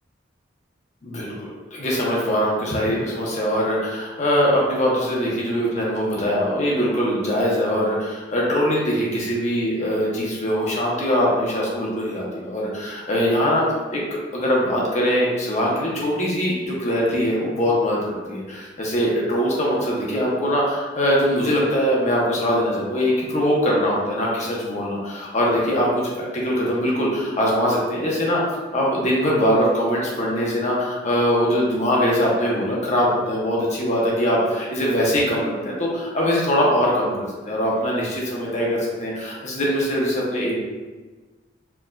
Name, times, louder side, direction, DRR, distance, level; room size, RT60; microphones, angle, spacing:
voice 1, 1.0-13.6 13.9-14.0 14.3-18.0 18.3-25.9 26.2-28.4 28.7-40.6, equal, 40° left, -4 dB, 0.9 m, -22 dB
4.5 x 2.7 x 2.3 m, 1.3 s
head